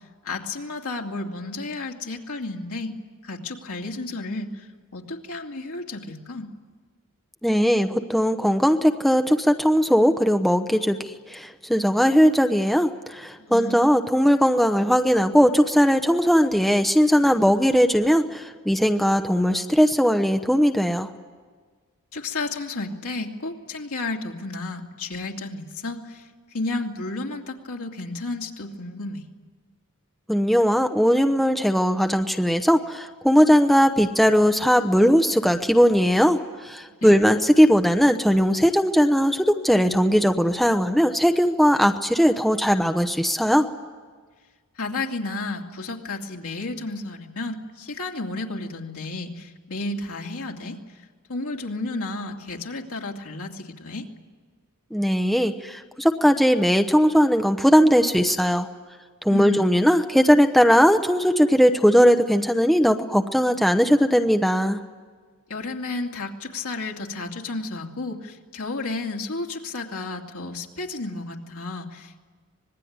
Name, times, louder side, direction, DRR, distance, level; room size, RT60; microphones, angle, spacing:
voice 1, 0.2-3.0 3.2-4.7 4.9-6.5 13.4-13.9 22.1-26.2 26.5-29.2 37.0-37.1 44.8-50.8 51.3-54.1 59.3-59.7 65.5-72.2, left 2 dB, 75° left, 0 dB, 2.8 m, -32 dB
voice 2, 7.4-11.0 11.3-21.1 30.3-36.4 36.6-43.7 54.9-58.7 59.2-64.8, equal, ahead, 5 dB, 0.8 m, -19 dB
25.5 x 20.5 x 9.6 m, 1.5 s
head